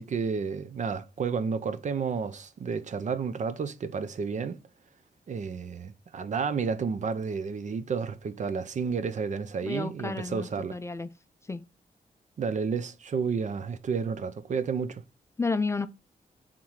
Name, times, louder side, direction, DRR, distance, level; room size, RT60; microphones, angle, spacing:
voice 1, 0.0-4.6 5.3-10.8 12.4-15.0, right 5 dB, 55° right, 0.6 m, -31 dB
voice 2, 9.7-11.1 11.5-11.6 15.4-15.9, left 3 dB, 20° left, 0.4 m, -31 dB
4.6 x 3.7 x 5.6 m
wide cardioid pair, 165°, 15 cm